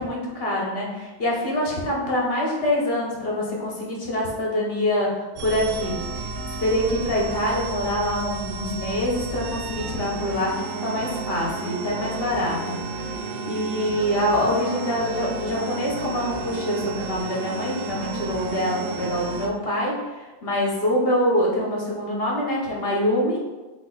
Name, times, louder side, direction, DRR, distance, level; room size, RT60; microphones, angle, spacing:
voice 1, 0.0-12.8 13.5-23.4, left 1 dB, 60° left, -3 dB, 1.2 m, -25 dB
sound 1, 5.4-19.5, right 3 dB, 75° right, 0.9 m, -32 dB
5.2 x 2.0 x 4.0 m, 1.2 s
omnidirectional pair, 1.2 m